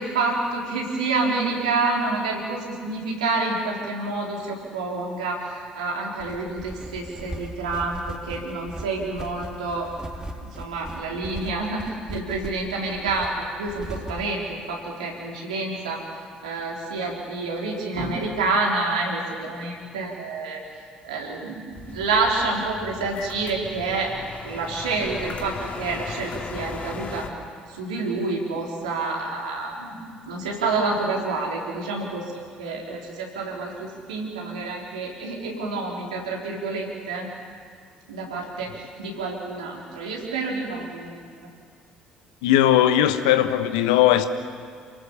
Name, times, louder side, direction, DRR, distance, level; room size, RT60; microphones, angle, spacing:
voice 1, 0.0-9.9 10.1-16.0 16.4-20.6 21.0-24.1 24.4-27.3 27.7-37.3 38.1-41.2, right 3 dB, 80° right, -2 dB, 4.0 m, -28 dB
sound 1, 6.2-14.3, right 1 dB, 20° right, 3.0 m, -38 dB
sound 2, 21.7-27.3, left 5 dB, 40° left, 2.6 m, -37 dB
voice 2, 42.4-44.2, left 12 dB, 75° left, 10 dB, 1.2 m, -18 dB
29.0 x 19.0 x 7.1 m, 2.1 s
figure-of-eight pair, 50°, 4 cm